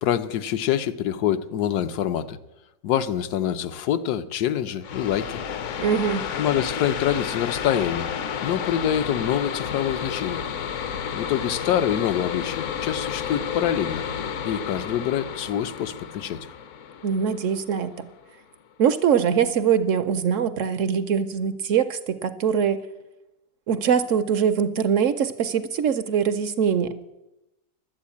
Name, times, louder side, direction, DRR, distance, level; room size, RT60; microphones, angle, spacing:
voice 1, 0.0-2.4 2.8-5.4 6.4-8.1 8.4-10.4 11.1-14.0 14.4-16.4, left 10 dB, 75° left, 11 dB, 1.2 m, -25 dB
sound 1, 4.8-18.2, left 7 dB, 60° left, 0.9 m, -31 dB
voice 2, 5.8-6.3 17.0-18.1 18.8-22.8 23.7-26.9, right 7 dB, 65° right, 11 dB, 0.8 m, -22 dB
11.5 x 8.4 x 8.3 m, 0.96 s
omnidirectional pair, 1.7 m